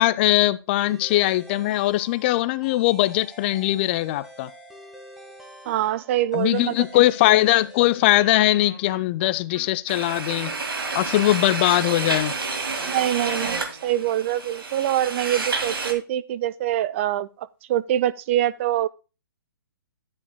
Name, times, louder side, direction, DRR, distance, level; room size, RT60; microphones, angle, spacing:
voice 1, 0.0-4.5 6.3-10.6 10.9-12.3, left 16 dB, 30° left, 0.4 m, -21 dB
sound 1, 0.8-8.9, equal, ahead, 1.4 m, -47 dB
voice 2, 5.7-6.8 12.8-18.9, right 12 dB, 35° right, 0.4 m, -24 dB
Wind instrument woodwind instrument, 8.1-14.0, right 4 dB, 55° right, 2.5 m, -44 dB
sound 2, 9.9-15.9, right 3 dB, 85° right, 1.9 m, -29 dB
12.0 x 9.8 x 2.2 m
hypercardioid pair, 140°, 12 cm